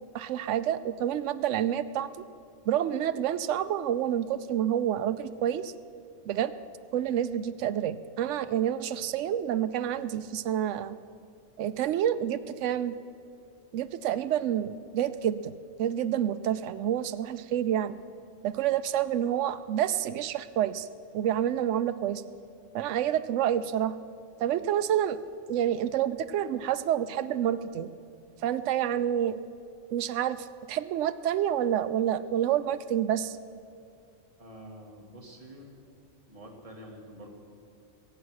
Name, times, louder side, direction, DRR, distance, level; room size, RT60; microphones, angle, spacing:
voice 1, 0.1-2.1 2.7-5.7 6.3-6.5 6.9-11.0 11.6-13.0 13.7-15.5 15.8-18.0 18.4-20.9 21.1-22.2 22.7-24.0 24.4-25.2 25.5-27.9 28.4-29.4 29.9-33.4, right 10 dB, 80° right, 12 dB, 0.9 m, -28 dB
voice 2, 34.4-35.7 36.3-37.3, equal, 30° right, -1 dB, 2.2 m, -47 dB
22.0 x 8.8 x 6.4 m, 2.4 s
omnidirectional pair, 1.2 m